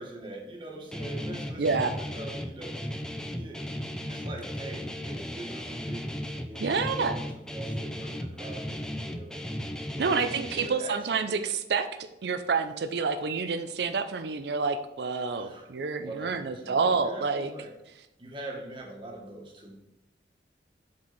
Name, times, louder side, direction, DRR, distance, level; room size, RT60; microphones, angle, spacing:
voice 1, 0.0-9.3 10.0-11.5 15.4-17.7 18.2-19.8, right 2 dB, 25° right, -1 dB, 1.4 m, -43 dB
Guitar, 0.9-10.7, equal, 5° left, 0.4 m, -36 dB
voice 2, 1.6-1.9 6.6-7.1 10.0-11.9 12.2-17.5, right 4 dB, 70° right, 8 dB, 0.5 m, -28 dB
7.5 x 4.4 x 4.0 m, 0.90 s
head